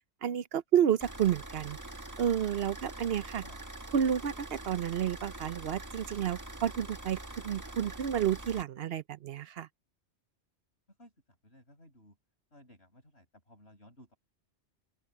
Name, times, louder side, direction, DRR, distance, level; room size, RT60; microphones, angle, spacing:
voice 1, 0.2-1.8 2.2-3.4 3.9-9.7, right 9 dB, 65° right, 0.9 m, -30 dB
sound 1, 1.0-8.6, right 2 dB, 15° right, 1.5 m, -44 dB
voice 2, 11.4-12.2 12.5-14.2, left 1 dB, 65° left, 7.4 m, -57 dB
open air
omnidirectional pair, 1.2 m